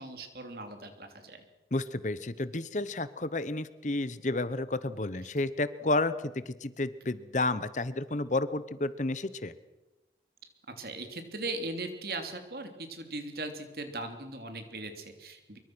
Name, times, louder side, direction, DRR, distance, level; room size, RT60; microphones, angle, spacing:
voice 1, 0.0-1.4 5.2-5.3 10.8-15.6, right 2 dB, 55° right, 6 dB, 3.2 m, -39 dB
voice 2, 1.7-6.1 6.5-9.5, left 2 dB, 45° left, 15 dB, 0.9 m, -31 dB
24.5 x 23.0 x 6.2 m, 1.0 s
head